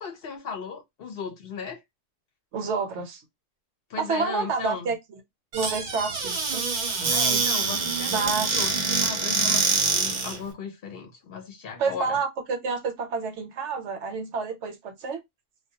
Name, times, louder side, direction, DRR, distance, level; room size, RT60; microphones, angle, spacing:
voice 1, 0.0-1.8 3.9-4.9 7.1-12.2, left 6 dB, 60° left, 0.8 m, -36 dB
voice 2, 2.5-3.2 4.0-5.2 5.5-6.7 8.1-8.5 11.8-15.2, right 5 dB, 75° right, 1.0 m, -29 dB
Squeak / Cupboard open or close, 5.5-10.4, right 4 dB, 50° right, 0.6 m, -25 dB
2.2 x 2.2 x 2.6 m
omnidirectional pair, 1.2 m